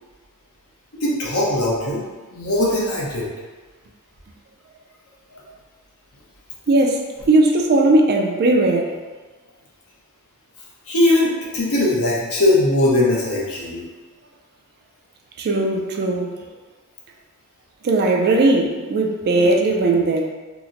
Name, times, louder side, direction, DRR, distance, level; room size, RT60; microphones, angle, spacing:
voice 1, 1.0-2.0 2.3-3.3 5.3-5.4 10.9-13.8, left 1 dB, 65° left, -4 dB, 0.8 m, -20 dB
voice 2, 6.7-8.9 15.4-16.4 17.8-20.3, right 2 dB, 45° right, 2 dB, 0.3 m, -18 dB
2.9 x 2.1 x 3.7 m, 1.4 s
head